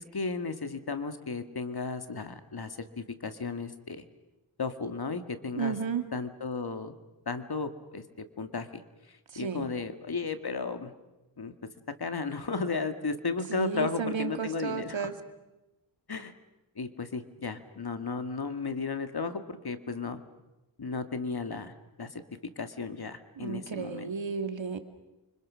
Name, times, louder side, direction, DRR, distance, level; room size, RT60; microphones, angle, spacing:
voice 1, 0.0-4.0 4.6-5.8 6.1-6.9 7.3-8.0 8.4-8.8 9.1-10.9 11.4-11.5 12.0-15.1 16.1-16.3 16.8-20.2 20.8-22.2 22.6-24.1, left 4 dB, 50° left, 9 dB, 2.0 m, -34 dB
voice 2, 5.6-6.0 9.4-9.7 13.5-15.1 23.4-24.8, right 6 dB, 70° right, 8 dB, 2.3 m, -33 dB
30.0 x 25.0 x 6.3 m, 1.0 s
wide cardioid pair, 65°, 47 cm